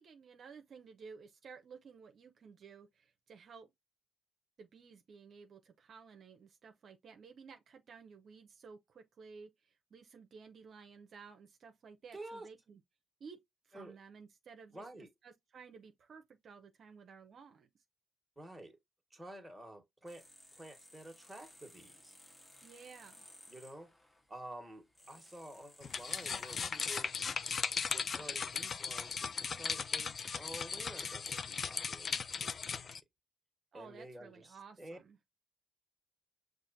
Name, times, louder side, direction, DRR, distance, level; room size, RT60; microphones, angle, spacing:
voice 1, 0.0-3.7 4.6-12.8 13.2-17.7 22.6-23.2 33.7-35.2, right 5 dB, 55° right, 0.7 m, -55 dB
voice 2, 12.1-12.5 13.7-13.9 14.7-15.1 18.4-18.8 19.1-20.2 20.5-22.2 23.5-23.9 24.3-27.2 27.7-32.9 33.7-35.0, right 1 dB, 10° right, 1.5 m, -50 dB
sound 1, 20.1-28.1, left 1 dB, 15° left, 0.9 m, -60 dB
sound 2, 25.8-33.0, left 6 dB, 45° left, 0.4 m, -37 dB
6.2 x 2.5 x 2.6 m
cardioid pair, 90°, 0 cm